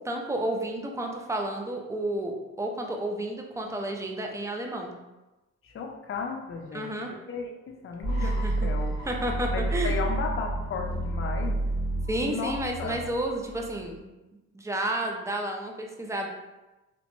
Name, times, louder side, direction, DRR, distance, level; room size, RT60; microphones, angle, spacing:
voice 1, 0.0-4.9 6.7-7.1 8.2-8.7 9.0-10.0 12.1-14.0 14.5-16.3, right 1 dB, 10° right, 2 dB, 0.4 m, -31 dB
voice 2, 5.6-9.0 9.5-11.6 12.2-12.5 12.8-13.0, left 5 dB, 45° left, 2 dB, 0.5 m, -34 dB
sound 1, 8.0-14.0, right 2 dB, 60° right, 1.4 m, -30 dB
2.9 x 2.1 x 3.0 m, 1.1 s
cardioid pair, 90°, 30 cm